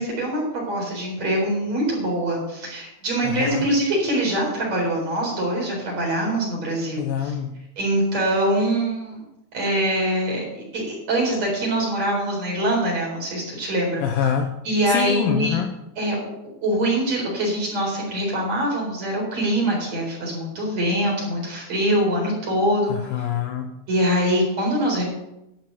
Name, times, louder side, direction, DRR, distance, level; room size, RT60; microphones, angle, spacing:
voice 1, 0.0-7.3 7.8-9.2 9.5-10.5 10.7-14.0 14.6-15.6 16.0-16.2 16.6-22.9 23.9-25.0, right 1 dB, 40° right, -2 dB, 5.0 m, -23 dB
voice 2, 3.2-3.7 7.0-7.5 14.0-14.6 14.8-15.7 22.9-23.7, left 8 dB, 85° left, 5 dB, 2.0 m, -25 dB
12.0 x 6.1 x 8.4 m, 0.90 s
omnidirectional pair, 5.1 m